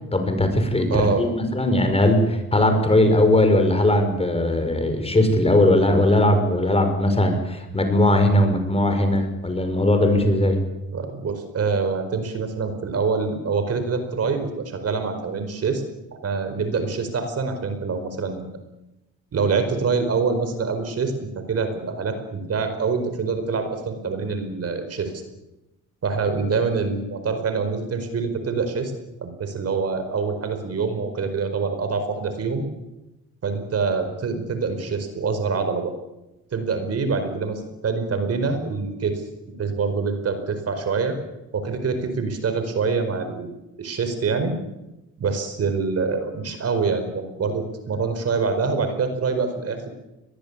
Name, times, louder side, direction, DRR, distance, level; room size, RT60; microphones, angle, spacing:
voice 1, 0.1-10.6, left 1 dB, 20° left, 6 dB, 5.9 m, -19 dB
voice 2, 0.9-1.2 10.9-15.8 16.2-18.5 19.3-25.1 26.0-28.9 29.2-32.6 33.4-35.9 36.5-39.2 39.6-41.2 41.5-44.5 45.2-49.9, right 4 dB, 55° right, 8 dB, 4.8 m, -25 dB
23.0 x 19.5 x 8.7 m, 0.95 s
cardioid pair, 90°, 30 cm